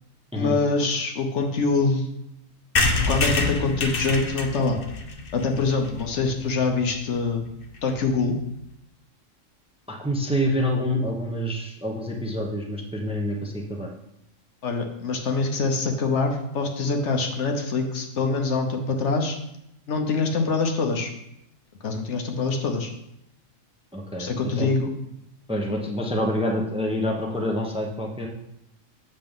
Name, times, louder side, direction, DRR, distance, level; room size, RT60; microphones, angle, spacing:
voice 1, 0.3-2.1 3.1-4.8 5.3-7.4 7.8-8.4 14.6-19.4 19.9-21.1 21.8-22.9 24.2-24.9, left 3 dB, 65° left, 4 dB, 1.1 m, -24 dB
sound 1, 2.8-6.4 6.9-7.0 7.2-7.3 7.5-7.6 7.8-8.0, left 3 dB, 50° left, 0.9 m, -26 dB
voice 2, 9.9-13.9 23.9-24.3 24.6-24.7 25.5-28.3, equal, 5° right, 0 dB, 0.8 m, -27 dB
7.7 x 6.7 x 3.6 m, 0.81 s
omnidirectional pair, 1.3 m